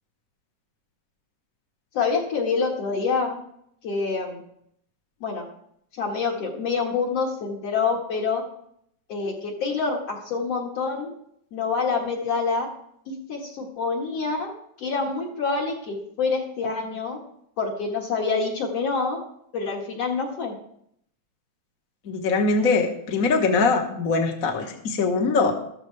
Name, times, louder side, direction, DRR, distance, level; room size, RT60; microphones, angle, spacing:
voice 1, 1.9-3.4 3.8-4.4 5.2-5.5 5.9-8.4 9.1-11.1 11.5-12.7 13.1-17.2 17.6-19.2 19.5-20.5, left 4 dB, 55° left, -2 dB, 2.8 m, -26 dB
voice 2, 22.0-25.6, left 4 dB, 35° left, 2 dB, 1.5 m, -22 dB
14.0 x 13.5 x 3.4 m, 0.70 s
omnidirectional pair, 3.4 m